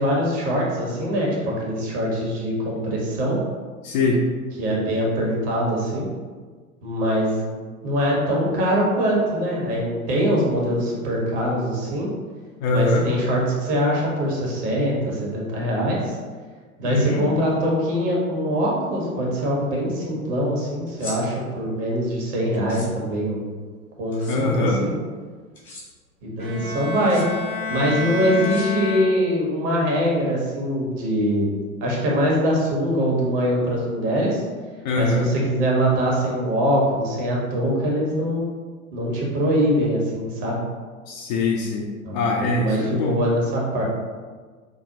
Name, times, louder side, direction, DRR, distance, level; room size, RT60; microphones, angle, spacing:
voice 1, 0.0-3.4 4.6-6.1 6.8-7.5 7.8-12.1 12.7-16.2 16.8-23.4 24.0-24.9 26.2-27.2 27.7-31.5 31.8-34.4 34.9-38.5 38.9-40.6 42.0-42.2 42.6-43.8, equal, 45° right, -3 dB, 1.2 m, -23 dB
voice 2, 3.8-4.2 12.6-13.1 16.8-17.2 24.3-24.8 34.8-35.3 41.1-41.9 42.1-43.2, left 2 dB, 35° left, -1 dB, 0.4 m, -22 dB
sound 1, 20.9-21.2 22.5-22.9 24.1-24.4 25.5-25.8 26.9-27.2 28.4-29.0, left 2 dB, 80° left, 1.5 m, -39 dB
Bowed string instrument, 26.4-29.6, left 3 dB, 90° right, 0.8 m, -29 dB
5.3 x 2.2 x 2.8 m, 1.5 s
figure-of-eight pair, 95°, 42 cm